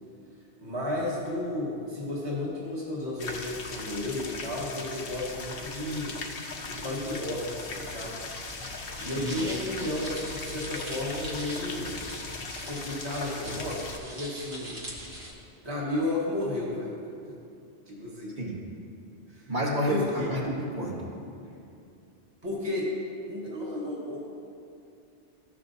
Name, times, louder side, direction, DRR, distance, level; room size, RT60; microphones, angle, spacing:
voice 1, 0.6-6.2 6.7-8.2 8.7-12.0 12.6-14.8 15.6-16.9 17.9-18.4 19.3-19.5 19.9-20.3 22.4-22.9 23.3-24.3, left 1 dB, 25° right, -5 dB, 1.4 m, -33 dB
sound 1, 3.2-14.0, left 3 dB, 60° left, 0.9 m, -39 dB
sound 2, 8.2-15.3, equal, 65° right, 1.6 m, -42 dB
voice 2, 19.5-21.1, equal, 45° right, -7 dB, 2.0 m, -29 dB
14.5 x 5.8 x 2.7 m, 2.6 s
omnidirectional pair, 1.1 m